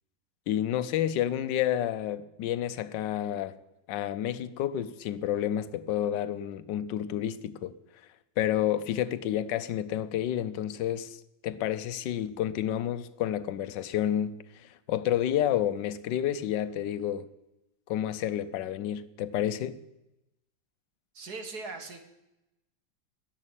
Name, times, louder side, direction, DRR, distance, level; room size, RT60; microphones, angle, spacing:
voice 1, 0.5-3.5 3.9-7.7 8.4-11.2 11.4-17.3 17.9-19.8, left 11 dB, 75° left, 1.4 m, -30 dB
voice 2, 21.1-22.1, right 3 dB, 55° right, 2.2 m, -40 dB
12.5 x 11.0 x 8.9 m
omnidirectional pair, 2.0 m